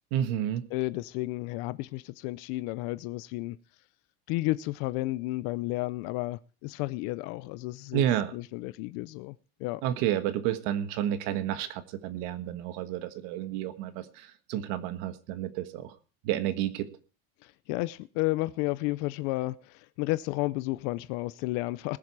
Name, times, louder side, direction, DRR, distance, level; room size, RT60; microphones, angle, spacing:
voice 1, 0.1-0.7 7.9-8.3 9.8-15.9 16.2-16.9, right 11 dB, 70° right, 1.4 m, -30 dB
voice 2, 0.7-3.6 4.3-8.0 8.3-9.8 17.4-22.0, left 19 dB, 65° left, 0.6 m, -32 dB
20.5 x 7.4 x 4.7 m
cardioid pair, 170°, 30 cm